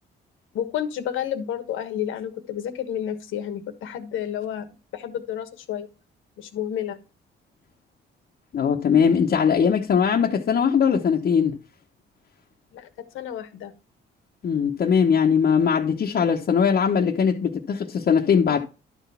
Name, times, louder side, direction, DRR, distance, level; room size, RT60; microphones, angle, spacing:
voice 1, 0.5-4.7 4.9-5.9 6.4-7.0 12.7-12.9 13.1-13.7, left 10 dB, 85° left, 1.4 m, -30 dB
voice 2, 8.5-11.6 14.4-18.6, left 7 dB, 50° left, 1.0 m, -20 dB
11.5 x 4.1 x 5.5 m
cardioid pair, 90°, 20 cm